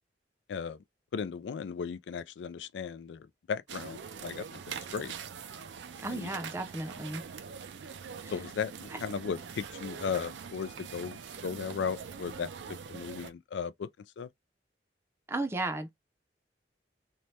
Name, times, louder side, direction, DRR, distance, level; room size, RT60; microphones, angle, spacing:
voice 1, 1.1-5.1 6.1-6.3 8.3-12.5 12.9-13.9 14.2-14.3, left 6 dB, 80° left, 0.3 m, -36 dB
sound 1, 3.7-13.3, right 6 dB, 85° right, 0.5 m, -43 dB
voice 2, 6.0-7.2 8.2-8.3 8.9-9.0 15.3-15.9, right 2 dB, 15° right, 0.5 m, -34 dB
3.2 x 2.1 x 2.7 m
head